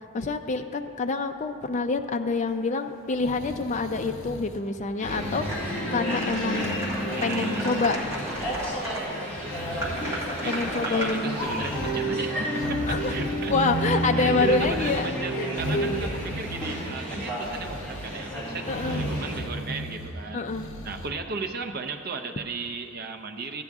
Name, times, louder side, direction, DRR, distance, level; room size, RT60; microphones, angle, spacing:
voice 1, 0.1-6.9 7.2-8.0 10.4-11.7 12.9-13.1 13.5-15.1 15.4-16.1 18.7-19.0 20.3-20.7, left 3 dB, 30° left, 6 dB, 0.4 m, -27 dB
sound 1, 3.1-4.7 5.0-5.9 6.3-7.9 8.2-8.9 9.4-10.9 11.3-12.1 12.5-14.0 14.3-15.1 15.5-17.0 17.4-18.2 18.7-20.1 20.5-21.1, equal, 65° left, 0.8 m, -37 dB
sound 2, 5.0-19.4, right 1 dB, 5° left, 2.0 m, -31 dB
sound 3, 5.5-5.6 6.1-9.0 9.8-11.2, right 1 dB, 15° right, 1.3 m, -35 dB
voice 2, 7.2-7.7 10.4-13.6 14.2-20.4 20.8-23.6, right 4 dB, 45° right, 6 dB, 0.6 m, -35 dB
13.5 x 9.1 x 3.6 m, 2.5 s
head